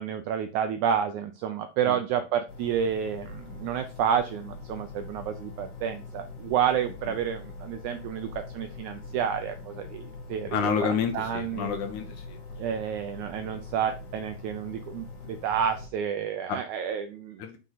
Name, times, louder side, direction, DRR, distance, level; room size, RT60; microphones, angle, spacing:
voice 1, 0.0-11.7 12.6-17.4, right 8 dB, 80° right, 8 dB, 1.7 m, -30 dB
sound 1, 2.5-15.9, left 3 dB, 55° left, 3.3 m, -43 dB
voice 2, 10.5-12.4 12.7-12.8 16.5-16.6 17.4-17.6, left 7 dB, 70° left, 5 dB, 2.1 m, -29 dB
6.2 x 3.8 x 5.7 m, 0.31 s
omnidirectional pair, 4.0 m